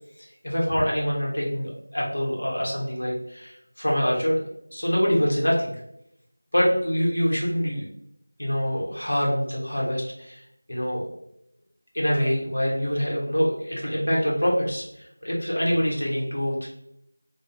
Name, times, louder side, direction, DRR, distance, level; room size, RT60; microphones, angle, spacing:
voice 1, 0.2-4.4 4.7-5.7 6.5-7.9 8.4-10.4 10.7-11.0 11.9-16.7, equal, 80° left, -4 dB, 1.0 m, -25 dB
2.9 x 2.3 x 2.5 m, 0.77 s
figure-of-eight pair, 175°, 0 cm